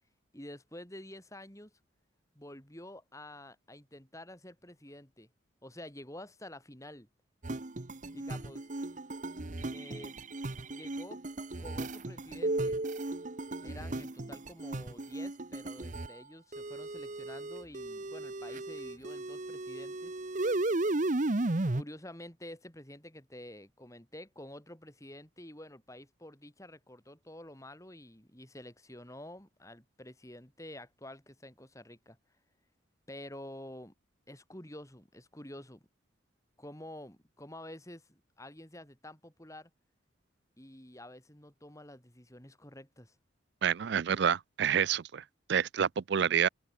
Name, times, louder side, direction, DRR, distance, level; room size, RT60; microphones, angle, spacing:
voice 1, 0.3-1.7 2.4-5.3 5.6-7.1 8.1-8.7 9.6-10.2 10.7-11.2 11.6-12.8 13.6-20.2 21.7-32.2 33.1-33.9 34.3-35.8 36.6-39.7 40.6-43.2, left 1 dB, 15° left, 4.0 m, -49 dB
sound 1, 7.4-16.1 16.5-21.8, right 2 dB, 40° right, 0.9 m, -35 dB
voice 2, 43.6-45.2 45.5-46.5, right 8 dB, 55° right, 0.4 m, -28 dB
open air
head